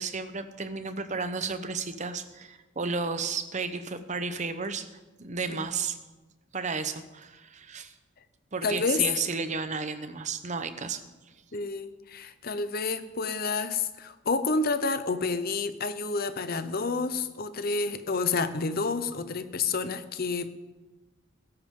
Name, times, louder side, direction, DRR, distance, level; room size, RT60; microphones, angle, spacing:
voice 1, 0.0-4.9 5.2-6.0 6.5-7.9 8.5-11.0, right 4 dB, 35° right, 10 dB, 0.8 m, -33 dB
voice 2, 8.6-9.1 11.5-20.5, left 4 dB, 45° left, 12 dB, 0.8 m, -29 dB
16.0 x 13.5 x 3.8 m, 1.2 s
head